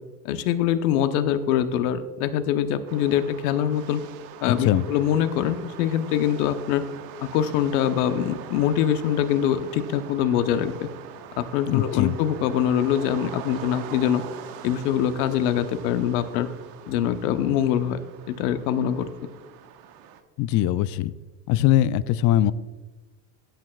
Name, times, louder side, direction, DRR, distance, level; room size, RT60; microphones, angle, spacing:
voice 1, 0.2-4.0 4.4-6.8 7.2-10.7 11.4-14.2 14.6-16.5 16.9-18.0 18.3-19.1, left 10 dB, 70° left, 10 dB, 0.9 m, -24 dB
sound 1, 2.9-20.2, right 9 dB, 65° right, 1.2 m, -43 dB
voice 2, 4.5-4.8 11.7-12.1 20.4-21.1 21.5-22.5, left 13 dB, 40° left, 17 dB, 0.5 m, -21 dB
16.5 x 9.1 x 2.3 m, 1.3 s
hypercardioid pair, 95°, 46 cm